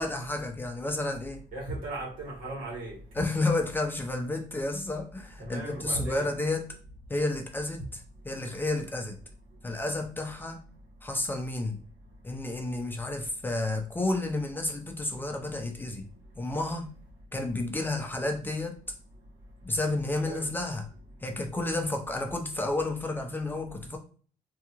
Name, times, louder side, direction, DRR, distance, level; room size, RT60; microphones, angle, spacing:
voice 1, 0.0-1.4 3.1-6.7 7.1-9.2 9.6-10.6 11.0-11.8 12.2-16.1 16.4-16.9 17.3-18.8 19.6-20.8 21.2-24.0, left 2 dB, 15° left, 3 dB, 0.4 m, -31 dB
voice 2, 1.5-2.9 5.4-6.3 20.2-20.5, right 2 dB, 80° right, -2 dB, 1.4 m, -36 dB
2.8 x 2.7 x 2.4 m, 0.41 s
cardioid pair, 135°, 14 cm